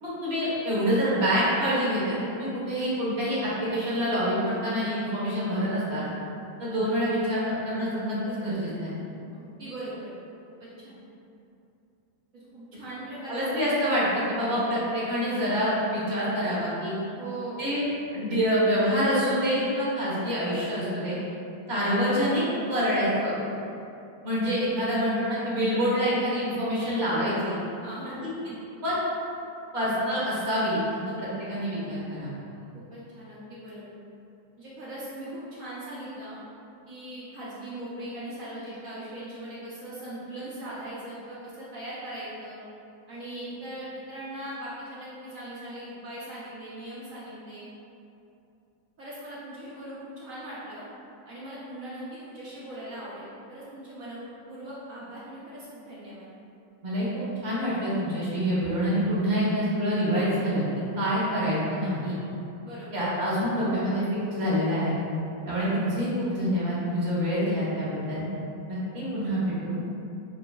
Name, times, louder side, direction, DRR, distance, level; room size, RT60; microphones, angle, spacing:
voice 1, 0.0-6.1 6.6-8.9 13.3-17.0 17.6-17.8 18.1-21.2 21.7-22.4 22.7-23.3 24.2-27.6 28.0-28.1 28.8-29.0 29.7-32.3 56.8-57.0 57.4-60.6 61.0-62.1 62.9-64.9 65.5-68.2 68.7-69.8, equal, 40° right, -9 dB, 1.3 m, -26 dB
voice 2, 9.3-10.1 10.6-11.0 12.3-13.7 17.2-17.6 27.8-28.2 32.7-33.9 34.6-36.4 36.9-42.6 43.1-47.7 49.0-50.8 51.2-56.3 62.6-63.1, right 1 dB, 60° right, -9 dB, 1.0 m, -40 dB
5.7 x 2.8 x 2.3 m, 2.7 s
omnidirectional pair, 2.0 m